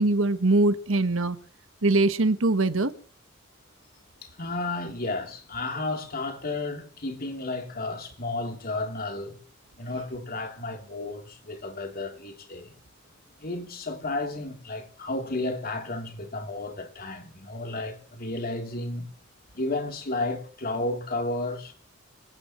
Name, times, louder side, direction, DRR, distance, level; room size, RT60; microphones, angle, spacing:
voice 1, 0.0-1.4 1.8-2.9, right 2 dB, 70° right, 1.4 m, -22 dB
voice 2, 4.2-9.4 9.8-12.8 13.4-19.1 19.5-21.8, left 2 dB, 45° left, 3.6 m, -32 dB
26.5 x 17.0 x 3.2 m
head